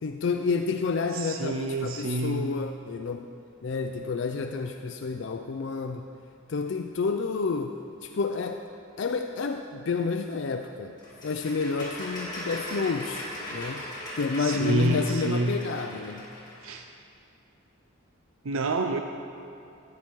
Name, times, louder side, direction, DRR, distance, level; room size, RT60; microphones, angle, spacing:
voice 1, 0.0-3.3 3.6-6.1 6.5-7.8 8.0-8.6 9.0-10.9 11.2-13.8 14.2-16.3, left 4 dB, 60° left, 5 dB, 0.4 m, -30 dB
voice 2, 1.1-2.5 14.4-15.6 16.6-16.8 18.4-19.0, right 2 dB, 75° right, 5 dB, 0.5 m, -28 dB
sound 1, 11.0-16.7, left 1 dB, 20° left, 3.2 m, -38 dB
14.0 x 9.7 x 4.6 m, 2.6 s
head